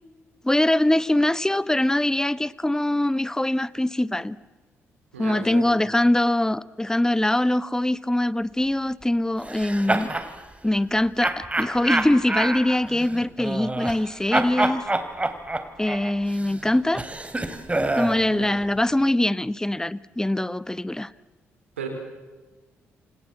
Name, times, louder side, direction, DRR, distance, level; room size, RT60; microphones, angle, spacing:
voice 1, 0.4-4.4 5.2-10.1 10.6-14.8 15.8-17.0 17.9-21.1, left 1 dB, 10° left, 1.1 m, -23 dB
voice 2, 5.1-5.7 18.3-18.5 21.8-21.9, right 6 dB, 85° right, 4.7 m, -34 dB
sound 1, 9.4-10.3 11.2-14.0 14.3-18.2, right 2 dB, 20° right, 3.4 m, -27 dB
29.0 x 27.5 x 7.5 m
figure-of-eight pair, 40°, 7 cm